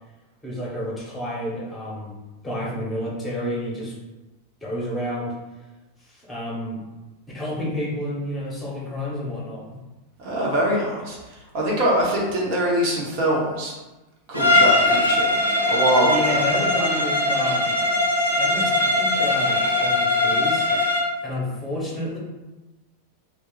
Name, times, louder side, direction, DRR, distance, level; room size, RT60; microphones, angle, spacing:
voice 1, 0.4-2.2 2.4-4.0 4.6-5.4 6.0-6.8 7.3-9.7 16.0-17.7 18.4-20.9 21.2-22.2, left 1 dB, 10° left, -5 dB, 1.0 m, -30 dB
voice 2, 10.2-11.2 11.5-13.7 14.3-15.3 15.7-16.4, right 1 dB, 45° right, -3 dB, 1.0 m, -23 dB
Bowed string instrument, 14.3-21.1, left 2 dB, 85° left, 0.6 m, -20 dB
2.4 x 2.3 x 3.8 m, 1.1 s
figure-of-eight pair, 90°, 0 cm